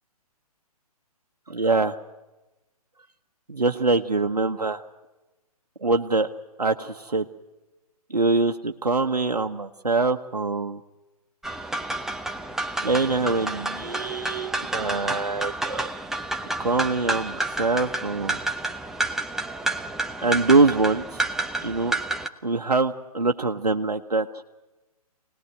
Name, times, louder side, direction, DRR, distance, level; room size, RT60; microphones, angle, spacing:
voice 1, 1.5-2.0 3.5-4.8 5.8-6.3 6.6-7.2 8.1-10.8 12.8-15.9 16.6-18.4 20.2-21.2 21.6-21.9 22.4-24.4, right 3 dB, 85° right, 4 dB, 1.1 m, -24 dB
sound 1, 11.4-22.3, right 2 dB, ahead, 0.7 m, -30 dB
24.5 x 19.5 x 7.9 m, 1.0 s
figure-of-eight pair, 130°, 20 cm